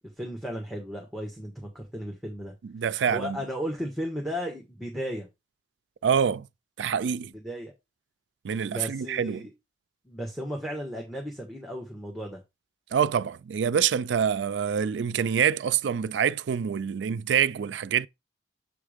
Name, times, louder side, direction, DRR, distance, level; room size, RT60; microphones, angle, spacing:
voice 1, 0.2-2.5 3.1-5.3 7.3-7.7 8.6-9.5 10.0-12.4, equal, ahead, 1.4 m, -35 dB
voice 2, 2.6-3.4 6.0-6.5 6.8-7.3 8.4-9.5 12.9-18.1, right 7 dB, 80° right, 0.4 m, -26 dB
7.2 x 3.5 x 5.0 m
head